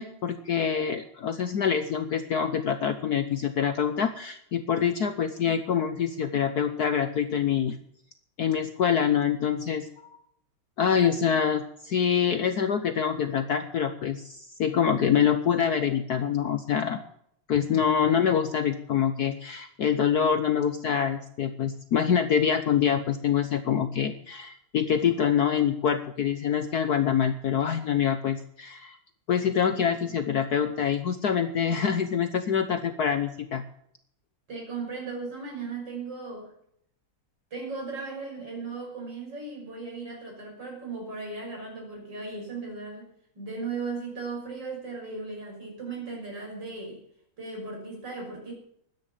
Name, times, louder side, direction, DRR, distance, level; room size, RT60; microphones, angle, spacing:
voice 1, 0.0-7.8 8.4-9.9 10.8-17.0 17.5-29.0 29.3-33.6, left 8 dB, 60° left, 10 dB, 1.2 m, -25 dB
voice 2, 34.5-36.5 37.5-43.1 43.3-47.0 47.4-48.5, right 4 dB, 55° right, -1 dB, 6.7 m, -37 dB
12.5 x 10.0 x 7.3 m, 0.70 s
omnidirectional pair, 2.3 m